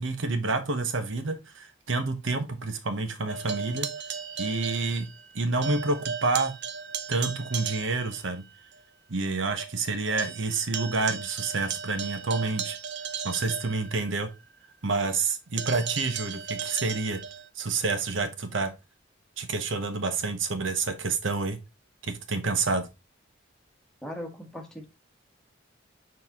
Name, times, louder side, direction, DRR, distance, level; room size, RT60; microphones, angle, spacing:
voice 1, 0.0-3.9 4.4-5.1 5.3-6.5 7.1-8.4 9.1-12.8 13.2-14.3 14.8-17.2 17.6-18.7 19.4-21.6 22.0-22.9, right 3 dB, 75° right, 1.0 m, -28 dB
sound 1, 3.3-5.3 5.6-8.3 8.7-8.8 9.2-9.3 9.6-14.4 15.6-17.5, right 7 dB, 60° right, 0.6 m, -36 dB
voice 2, 24.0-24.9, equal, 5° left, 1.5 m, -38 dB
6.9 x 4.2 x 3.6 m
head